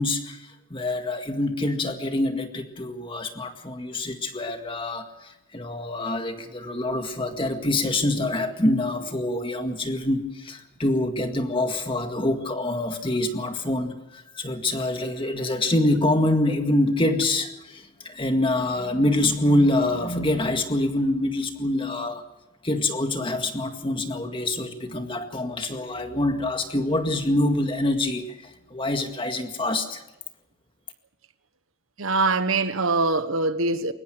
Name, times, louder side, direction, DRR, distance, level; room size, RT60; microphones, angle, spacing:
voice 1, 0.0-22.2 22.6-30.0, left 1 dB, 25° left, 1.9 m, -25 dB
voice 2, 32.0-33.9, right 3 dB, 80° right, 1.3 m, -23 dB
22.5 x 20.0 x 6.3 m
head